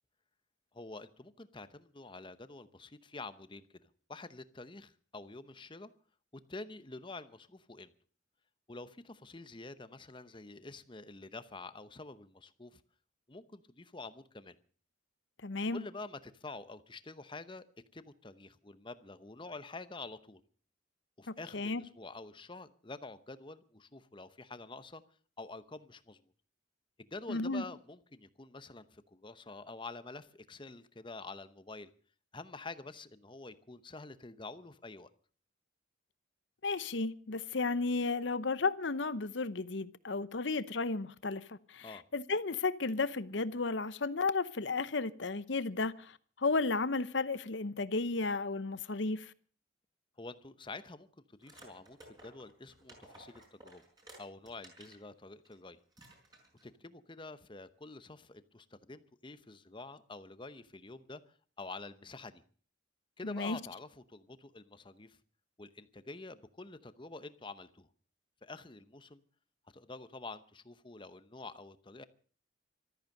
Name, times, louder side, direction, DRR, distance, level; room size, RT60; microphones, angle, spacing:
voice 1, 0.7-3.6 4.1-5.9 6.5-7.9 8.7-12.8 13.3-14.6 15.7-17.6 17.9-20.4 21.2-25.0 25.4-26.2 27.0-31.9 32.3-35.1 41.8-42.0 50.2-53.8 54.2-55.8 56.6-61.2 61.6-62.4 63.2-65.2 65.6-67.9 68.4-69.2 69.7-72.0, left 3 dB, 25° left, 0.8 m, -48 dB
voice 2, 15.4-15.8 21.5-21.8 27.3-27.6 36.6-49.3 63.2-63.6, left 3 dB, 65° left, 0.8 m, -33 dB
sound 1, 51.4-55.0 55.4-55.6 55.9-56.7, right 1 dB, 20° right, 5.3 m, -56 dB
14.5 x 13.5 x 6.6 m
head